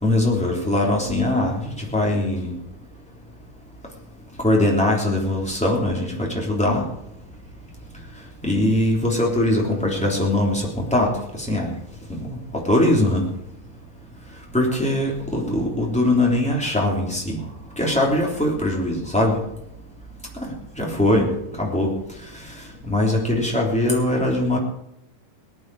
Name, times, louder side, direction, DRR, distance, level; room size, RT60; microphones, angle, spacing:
voice 1, 0.0-2.5 4.4-6.8 8.4-11.1 11.4-11.7 12.1-12.4 12.7-13.2 14.5-17.4 17.8-19.4 20.4-20.5 20.8-21.9 22.8-24.6, left 1 dB, ahead, -2 dB, 2.9 m, -21 dB
19.0 x 11.0 x 4.9 m, 0.80 s
omnidirectional pair, 4.1 m